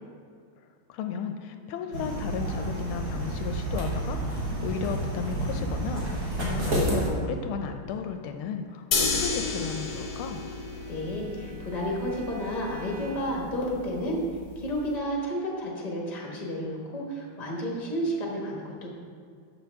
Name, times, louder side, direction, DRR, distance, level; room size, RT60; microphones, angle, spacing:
voice 1, 0.9-10.4, left 7 dB, 80° left, 6 dB, 1.4 m, -34 dB
sound 1, 1.9-7.1, right 1 dB, 50° right, 1.9 m, -30 dB
sound 2, 8.9-14.9, left 4 dB, 55° left, 1.2 m, -33 dB
Bowed string instrument, 10.4-13.6, right 6 dB, 75° right, 0.8 m, -47 dB
voice 2, 10.9-14.2 14.5-18.9, equal, 25° left, -1 dB, 1.1 m, -31 dB
13.0 x 5.2 x 3.5 m, 2.2 s
omnidirectional pair, 2.3 m